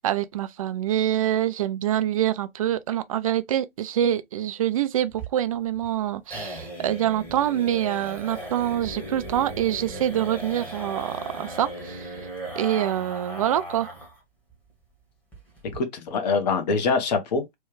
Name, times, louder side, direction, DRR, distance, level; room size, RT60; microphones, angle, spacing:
voice 1, 0.0-12.1 12.5-13.9, right 11 dB, 35° right, 0.4 m, -25 dB
sound 1, 5.1-14.2 14.5-14.6 14.9-15.0 15.3-15.8, right 1 dB, 5° left, 1.0 m, -37 dB
voice 2, 15.7-17.6, left 4 dB, 45° left, 0.9 m, -24 dB
3.2 x 2.3 x 3.1 m
figure-of-eight pair, 130°, 30 cm